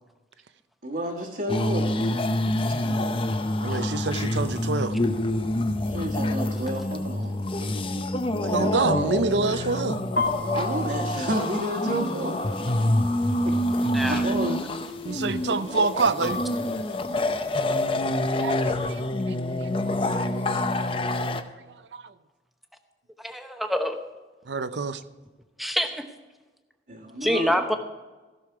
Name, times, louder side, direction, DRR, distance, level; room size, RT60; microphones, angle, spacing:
voice 1, 0.8-2.1 5.8-7.4 10.5-12.9 13.4-14.6 26.9-27.6, equal, 60° right, -3 dB, 1.4 m, -31 dB
sound 1, 1.5-21.4, left 1 dB, 30° left, 0.6 m, -27 dB
voice 2, 3.6-4.9 7.6-7.7 8.4-10.0 15.0-16.4 18.4-20.9 21.8-22.1 24.5-25.0, right 4 dB, 85° right, 13 dB, 0.6 m, -28 dB
sound 2, 10.2-18.0, left 3 dB, 85° left, 1.5 m, -38 dB
voice 3, 23.2-24.0 25.6-26.0 27.2-27.8, equal, ahead, 6 dB, 0.8 m, -25 dB
15.5 x 6.6 x 4.6 m, 1.2 s
head